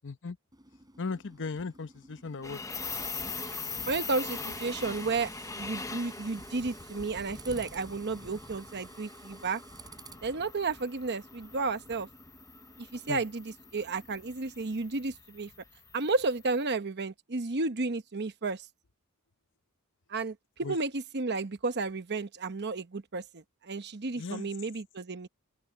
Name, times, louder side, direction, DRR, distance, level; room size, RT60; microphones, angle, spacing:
voice 1, 0.0-0.4 1.0-2.6 13.1-13.2 20.6-20.8 24.2-24.5, left 4 dB, 55° left, 0.8 m, -37 dB
Tools, 0.5-14.9, right 3 dB, 20° right, 4.1 m, -53 dB
sound 1, 2.4-16.5, left 4 dB, 15° left, 0.7 m, -42 dB
voice 2, 3.9-5.3 5.6-9.6 10.2-12.1 12.8-15.5 15.9-18.7 20.1-25.3, right 3 dB, 50° right, 0.9 m, -32 dB
open air
head